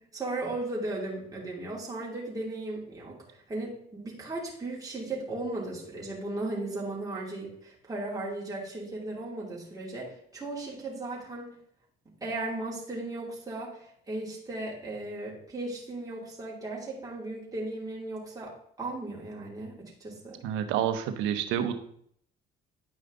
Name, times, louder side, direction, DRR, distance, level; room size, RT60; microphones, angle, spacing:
voice 1, 0.1-11.5 12.2-20.4, right 2 dB, 20° right, -5 dB, 2.9 m, -36 dB
voice 2, 20.4-21.7, right 10 dB, 80° right, 9 dB, 0.8 m, -28 dB
9.9 x 5.1 x 3.9 m, 0.66 s
supercardioid pair, 75°, 19 cm